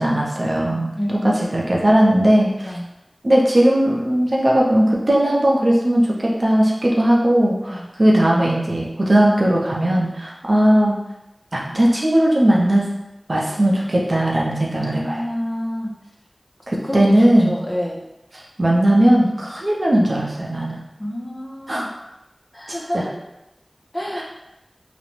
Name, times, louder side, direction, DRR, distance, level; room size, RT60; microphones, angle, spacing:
voice 1, 0.0-2.7 3.2-11.0 11.5-12.8 13.3-15.2 16.7-17.5 18.6-20.8 21.7-21.8 22.9-23.1 24.2-24.3, right 1 dB, 55° right, -3 dB, 0.5 m, -18 dB
voice 2, 1.0-1.5 2.6-2.8 7.7-7.8 14.8-15.9 16.8-18.0 21.0-21.9 22.5-23.1 23.9-24.2, equal, 30° left, -2 dB, 0.5 m, -28 dB
2.4 x 2.0 x 3.0 m, 0.91 s
wide cardioid pair, 55°, 0 cm